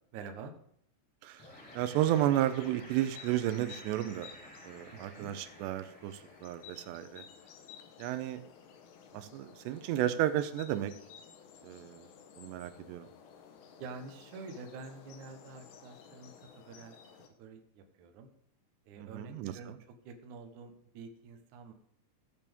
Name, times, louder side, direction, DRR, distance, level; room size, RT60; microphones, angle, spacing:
voice 1, 0.1-0.5 4.9-5.3 13.8-18.3 18.9-21.7, right 4 dB, 70° right, 5 dB, 2.0 m, -48 dB
sound 1, 1.4-17.3, left 7 dB, 80° left, 3.2 m, -55 dB
sound 2, 1.4-6.8, equal, 5° left, 1.1 m, -53 dB
voice 2, 1.7-4.3 4.6-7.2 8.0-8.4 9.1-10.9 11.6-12.1 12.4-13.1 19.0-19.5, right 12 dB, 85° right, 10 dB, 2.9 m, -32 dB
16.5 x 6.9 x 3.6 m, 0.68 s
omnidirectional pair, 4.8 m